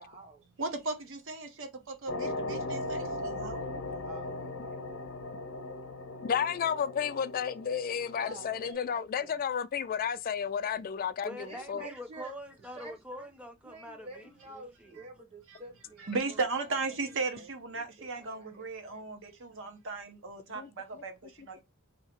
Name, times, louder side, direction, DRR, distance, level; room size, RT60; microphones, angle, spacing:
voice 1, 0.0-0.4 4.0-5.0 8.2-9.4 11.4-12.3 12.7-13.0 13.6-19.0, right 2 dB, 30° right, 1.1 m, -50 dB
voice 2, 0.6-3.6 15.5-15.6 16.0-21.6, right 3 dB, 60° right, 0.9 m, -36 dB
sound 1, 2.1-8.7, left 2 dB, 65° left, 0.7 m, -38 dB
voice 3, 6.2-11.9 20.5-20.7 20.9-21.0, left 7 dB, 40° left, 0.3 m, -32 dB
voice 4, 11.2-15.0, equal, 5° right, 0.6 m, -44 dB
2.8 x 2.8 x 4.4 m
head